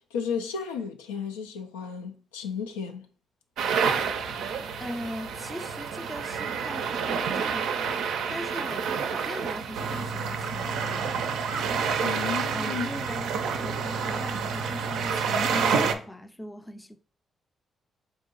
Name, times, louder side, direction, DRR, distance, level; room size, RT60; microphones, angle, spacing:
voice 1, 0.1-3.1 12.0-12.9, left 6 dB, 85° left, 0.3 m, -33 dB
sound 1, 3.6-15.9, right 6 dB, 70° right, 0.4 m, -28 dB
voice 2, 4.8-8.0 8.3-11.2 12.5-13.3 13.6-17.0, left 1 dB, 15° left, 0.5 m, -40 dB
3.7 x 2.8 x 3.7 m
hypercardioid pair, 40°, 0 cm